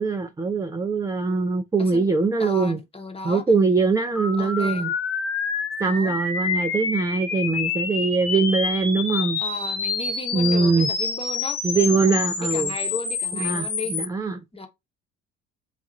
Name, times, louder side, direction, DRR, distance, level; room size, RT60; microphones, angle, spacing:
voice 1, 0.0-2.8 3.2-4.9 5.8-9.4 10.3-10.9 11.6-12.7 13.3-14.4, right 4 dB, 10° right, 0.4 m, -22 dB
voice 2, 2.4-3.4 4.4-4.9 5.8-6.2 9.4-11.6 12.0-14.0 14.5-14.7, left 3 dB, 15° left, 1.0 m, -35 dB
sound 1, 4.1-14.0, left 5 dB, 45° left, 1.3 m, -28 dB
4.1 x 2.3 x 4.0 m
hypercardioid pair, 60°, 34 cm